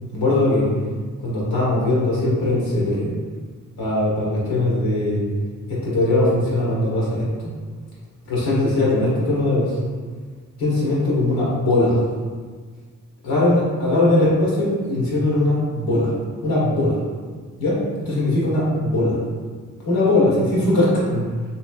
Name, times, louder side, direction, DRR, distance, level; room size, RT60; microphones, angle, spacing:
voice 1, 0.1-0.7 1.2-3.1 3.8-5.2 5.7-7.3 8.3-9.8 10.6-12.0 13.2-16.1 16.4-17.0 17.6-19.2 19.8-21.2, left 2 dB, 80° left, -6 dB, 1.1 m, -20 dB
3.0 x 2.9 x 2.3 m, 1.5 s
supercardioid pair, 50°, 35 cm